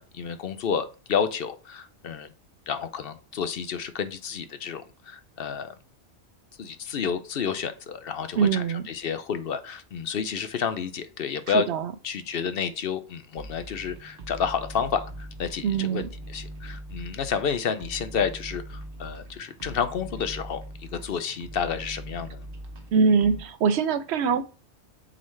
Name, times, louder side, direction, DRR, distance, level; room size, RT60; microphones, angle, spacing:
voice 1, 0.0-2.3 2.7-5.7 6.6-11.7 12.0-16.0 16.3-22.5, left 7 dB, 60° left, 11 dB, 0.8 m, -30 dB
voice 2, 8.4-8.9 11.5-11.9 15.6-16.1 22.9-24.4, right 5 dB, 70° right, 12 dB, 0.8 m, -23 dB
sound 1, 13.4-23.4, right 1 dB, 50° right, 1.2 m, -41 dB
7.6 x 4.0 x 3.2 m, 0.33 s
omnidirectional pair, 1.2 m